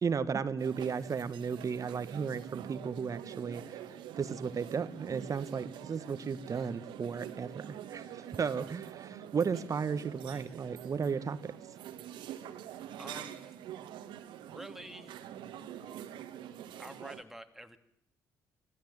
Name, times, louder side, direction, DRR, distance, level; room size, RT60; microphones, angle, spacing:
voice 1, 0.0-3.8 4.2-11.5, right 6 dB, 40° right, 14 dB, 1.4 m, -34 dB
sound 1, 0.6-17.2, right 10 dB, 65° right, 1.7 m, -46 dB
voice 2, 10.2-10.6 13.0-13.6 14.5-15.2 16.8-17.8, right 1 dB, 5° right, 7 dB, 2.6 m, -48 dB
26.5 x 16.5 x 7.7 m, 0.73 s
figure-of-eight pair, 45°, 9 cm